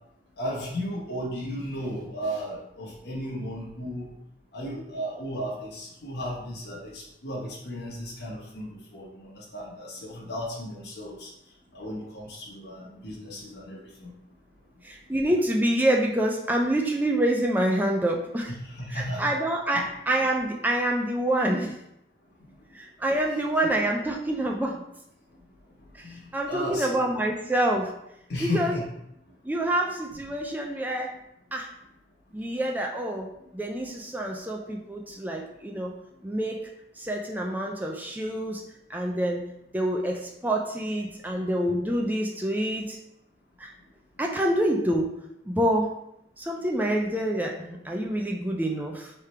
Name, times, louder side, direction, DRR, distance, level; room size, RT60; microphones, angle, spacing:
voice 1, 0.4-4.1 4.5-11.3 11.7-14.1 18.5-19.2 19.7-19.8 23.6-23.7 26.0-27.0 28.3-28.9, equal, 70° left, -5 dB, 1.1 m, -35 dB
voice 2, 14.8-18.5 18.9-21.8 22.7-24.8 25.9-27.9 28.4-28.8 29.4-31.2 31.5-31.7 32.3-36.7 37.0-38.6 38.9-39.5 39.7-43.0 43.6-43.7 44.2-45.1 45.5-45.9 46.4-49.1, right 1 dB, 10° right, 0 dB, 0.4 m, -27 dB
3.6 x 3.3 x 4.2 m, 0.80 s
head